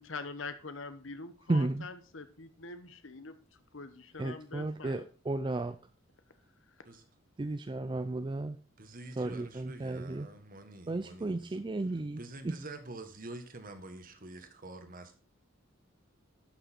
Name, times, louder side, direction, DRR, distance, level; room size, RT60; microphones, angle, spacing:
voice 1, 0.0-3.4 3.7-5.0, left 3 dB, 65° left, 11 dB, 1.1 m, -44 dB
voice 2, 1.5-1.9 4.2-5.8 7.4-8.6 9.2-10.3 10.9-12.6, right 2 dB, 25° right, 10 dB, 0.4 m, -34 dB
voice 3, 8.8-11.6 12.2-15.2, right 2 dB, 40° right, 8 dB, 1.4 m, -47 dB
11.5 x 6.4 x 4.4 m, 0.39 s
head